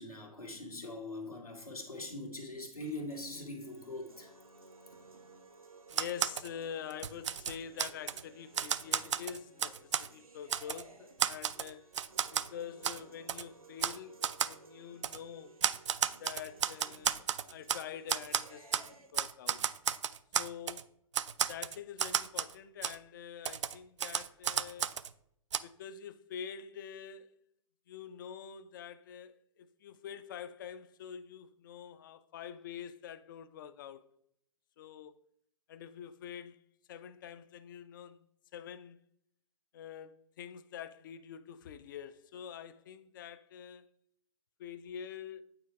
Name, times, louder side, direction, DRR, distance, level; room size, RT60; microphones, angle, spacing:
voice 1, 0.0-4.4, left 2 dB, 90° left, 1.8 m, -42 dB
sound 1, 3.1-19.1, right 3 dB, 75° right, 1.1 m, -57 dB
voice 2, 5.9-12.0 12.3-15.6 16.2-19.6 20.4-20.9 21.5-25.0 25.6-27.3 27.9-34.1 34.8-35.2 35.7-38.3 38.5-39.0 39.7-43.9 44.6-45.4, left 8 dB, 35° left, 0.4 m, -46 dB
Typewriter, 5.9-6.5 6.9-8.2 8.5-10.1 10.5-10.8 11.2-12.5 12.8-13.0 13.3-13.4 13.8-14.0 14.2-14.5 15.0-15.2 15.6-17.8 18.1-18.9 19.1-20.8 21.1-22.5 22.8-23.0 23.4-25.1 25.5-25.6, right 8 dB, 55° right, 0.4 m, -33 dB
8.9 x 4.5 x 3.3 m
figure-of-eight pair, 120°, 18 cm